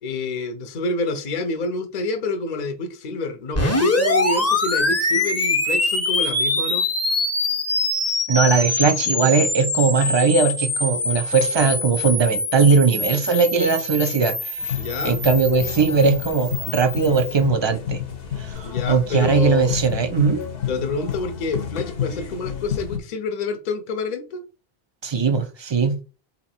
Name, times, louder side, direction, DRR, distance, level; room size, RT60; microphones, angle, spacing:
voice 1, 0.0-6.9 14.7-15.2 18.6-19.7 20.7-24.4, left 3 dB, 50° left, 8 dB, 0.7 m, -28 dB
sound 1, 3.5-17.4, left 2 dB, 15° left, 0.7 m, -24 dB
voice 2, 8.3-18.0 18.4-20.4 25.0-26.0, right 5 dB, 35° right, 8 dB, 0.5 m, -19 dB
sound 2, 14.6-23.0, left 8 dB, 70° left, 0.9 m, -30 dB
4.1 x 2.9 x 4.2 m, 0.33 s
omnidirectional pair, 1.0 m